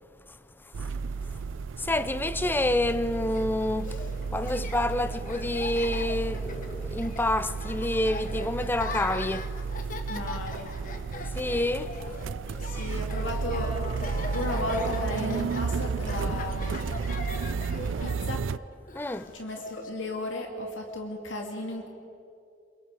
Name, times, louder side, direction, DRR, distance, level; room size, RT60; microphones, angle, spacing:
sound 1, 0.7-18.6, right 5 dB, 85° right, 0.4 m, -33 dB
voice 1, 1.8-4.0 4.3-9.5 11.3-11.9 18.9-19.3, left 1 dB, 10° left, 0.5 m, -28 dB
Laughter, 3.1-19.9, left 3 dB, 45° left, 1.3 m, -41 dB
voice 2, 10.1-10.7 12.6-13.7 14.3-16.8 18.0-18.4 19.3-21.9, left 1 dB, 80° left, 2.3 m, -34 dB
27.0 x 23.0 x 4.9 m
head